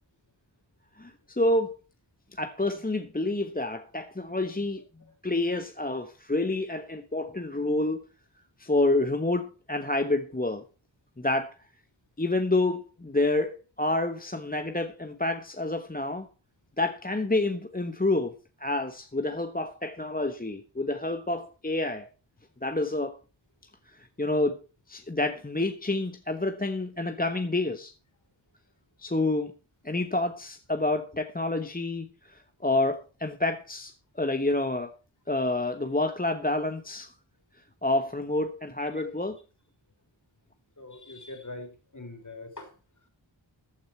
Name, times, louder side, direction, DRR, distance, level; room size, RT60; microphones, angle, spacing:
voice 1, 1.0-1.8 2.4-4.8 5.2-8.0 8.6-10.6 11.2-11.5 12.2-16.3 16.8-18.3 18.6-22.1 22.6-23.2 24.2-24.6 24.9-27.9 29.0-29.5 29.8-34.9 35.3-37.1 37.8-39.4, left 2 dB, 20° left, 1.1 m, -28 dB
voice 2, 40.8-42.7, left 2 dB, 40° left, 4.1 m, -42 dB
14.5 x 9.3 x 4.4 m
wide cardioid pair, 45°, 47 cm